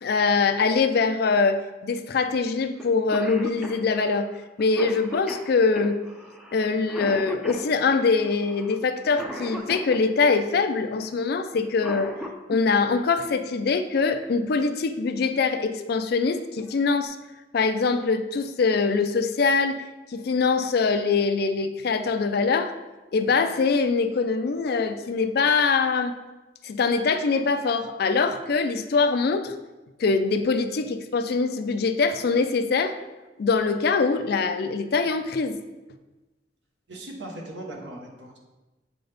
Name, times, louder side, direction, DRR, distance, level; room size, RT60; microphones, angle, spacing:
voice 1, 0.0-4.3 4.6-6.0 6.5-12.1 12.5-17.2 17.5-19.8 20.1-22.7 23.1-26.1 26.6-29.5 30.0-32.9 33.4-35.6, left 4 dB, 55° left, 9 dB, 0.4 m, -23 dB
Cough, 2.8-2.9 3.1-10.4 11.5-12.6 14.2-14.3 15.4-15.6 16.1-16.2 16.6-17.1, equal, 5° right, 0.5 m, -38 dB
voice 2, 36.9-38.4, right 1 dB, 70° right, 0 dB, 1.1 m, -38 dB
7.8 x 3.9 x 3.4 m, 1.1 s
head